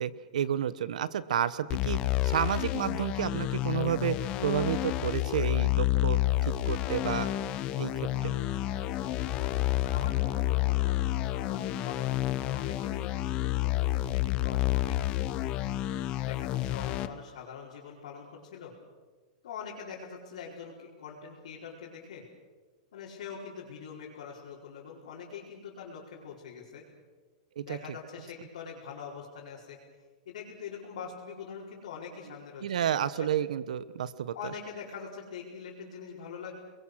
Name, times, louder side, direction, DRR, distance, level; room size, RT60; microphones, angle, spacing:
voice 1, 0.0-7.3 7.8-8.3 27.6-28.0 32.6-34.3, right 9 dB, 85° right, 16 dB, 1.1 m, -31 dB
sound 1, 1.7-17.1, left 15 dB, 25° left, 0.8 m, -29 dB
sound 2, 7.7-13.1, left 2 dB, 5° left, 5.7 m, -50 dB
voice 2, 9.4-15.4 16.2-18.8 19.4-22.3 22.9-26.9 27.6-29.8 30.2-33.3 34.3-36.5, left 6 dB, 65° left, -6 dB, 5.1 m, -44 dB
29.0 x 22.0 x 6.4 m, 1.4 s
supercardioid pair, 175°, 4 cm